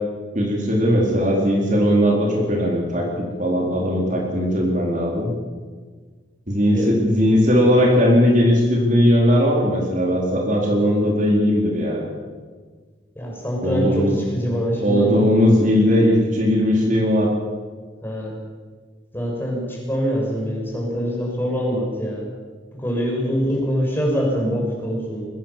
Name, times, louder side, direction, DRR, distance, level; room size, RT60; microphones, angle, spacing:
voice 1, 0.3-5.3 6.5-12.1 13.6-14.2 14.8-17.3, equal, 40° right, -1 dB, 4.1 m, -18 dB
voice 2, 13.2-15.5 18.0-18.3 19.1-22.3 22.7-25.3, equal, 10° left, -2 dB, 6.8 m, -24 dB
22.0 x 19.0 x 7.4 m, 1.5 s
head